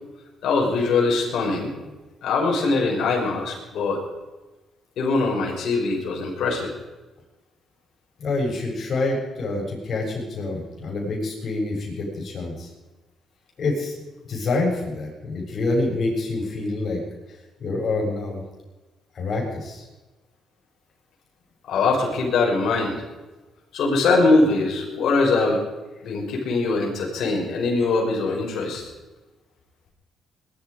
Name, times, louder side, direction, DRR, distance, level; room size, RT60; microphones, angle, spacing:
voice 1, 0.4-1.7 2.2-4.0 5.0-6.7 21.7-23.0 23.7-25.6 26.0-28.8, left 3 dB, 70° left, -1 dB, 5.8 m, -22 dB
voice 2, 8.2-12.7 13.6-14.0 14.3-17.0 17.6-18.4 19.1-19.9, left 2 dB, 55° left, -1 dB, 7.1 m, -26 dB
20.5 x 12.5 x 5.1 m, 1.2 s
cardioid pair, 90°, 0 cm